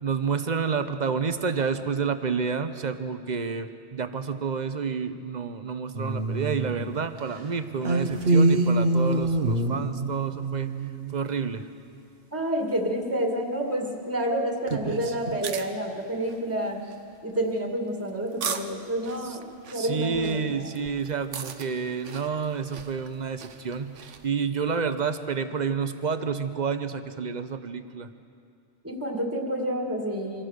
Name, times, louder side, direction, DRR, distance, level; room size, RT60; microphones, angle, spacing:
voice 1, 0.0-10.7 11.1-11.6 19.2-19.4 19.7-28.1, right 5 dB, 40° right, 10 dB, 0.9 m, -29 dB
sound 1, 5.9-7.3 7.8-11.2 14.7-15.4, right 2 dB, 55° right, 1.4 m, -25 dB
voice 2, 12.3-16.9 17.2-19.4 19.7-20.7 28.8-30.4, right 1 dB, 10° right, 1 dB, 2.0 m, -29 dB
sound 2, 15.2-24.3, right 6 dB, 80° right, 1.3 m, -40 dB
25.0 x 15.5 x 6.6 m, 2.3 s
omnidirectional pair, 1.2 m